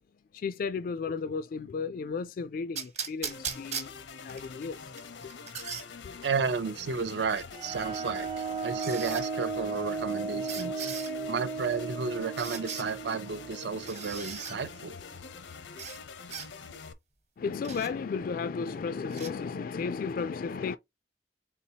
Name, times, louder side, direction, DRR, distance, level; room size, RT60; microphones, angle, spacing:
voice 1, 0.3-3.9 4.2-4.9 5.2-5.3 6.0-6.2 17.4-20.8, left 5 dB, 50° left, 0.3 m, -34 dB
sound 1, 2.8-4.5 5.0-5.9 7.4-7.5 8.8-9.2 10.5-11.1 12.4-12.9 13.9-14.6 15.8-16.0 16.3-16.5 17.6-17.9 19.1-19.3, right 7 dB, 40° right, 1.1 m, -38 dB
sound 2, 3.2-16.9, left 5 dB, 85° left, 0.7 m, -45 dB
voice 2, 6.2-10.9 11.3-14.9, right 5 dB, 65° right, 0.5 m, -32 dB
sound 3, 7.6-15.0, right 4 dB, 25° right, 0.6 m, -36 dB
4.1 x 3.4 x 2.8 m
head